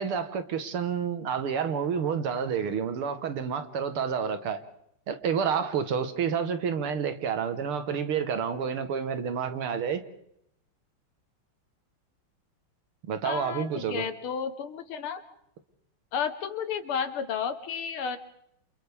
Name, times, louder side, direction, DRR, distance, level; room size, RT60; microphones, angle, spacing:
voice 1, 0.0-4.6 5.1-10.0 13.1-14.1, right 7 dB, 80° right, 9 dB, 2.3 m, -29 dB
voice 2, 13.2-15.2 16.1-18.2, left 7 dB, 75° left, 9 dB, 2.2 m, -32 dB
29.0 x 28.0 x 3.6 m, 0.75 s
omnidirectional pair, 2.4 m